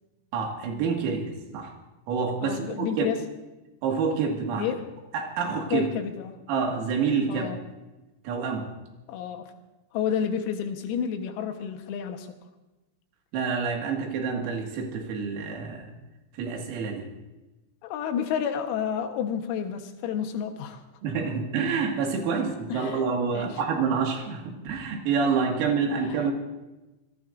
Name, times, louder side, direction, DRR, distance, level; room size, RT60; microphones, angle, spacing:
voice 1, 0.3-1.7 2.1-3.1 3.8-4.7 5.1-5.9 6.5-7.5 8.2-8.7 13.3-15.9 16.4-17.1 21.0-26.3, right 5 dB, 85° right, 2 dB, 4.8 m, -27 dB
voice 2, 2.4-3.3 4.6-4.8 5.7-6.4 7.3-7.6 9.1-9.5 9.9-12.3 17.8-20.8 22.7-23.0 23.3-23.5, left 8 dB, 90° left, 5 dB, 4.1 m, -30 dB
26.5 x 18.5 x 2.7 m, 1.1 s
omnidirectional pair, 5.9 m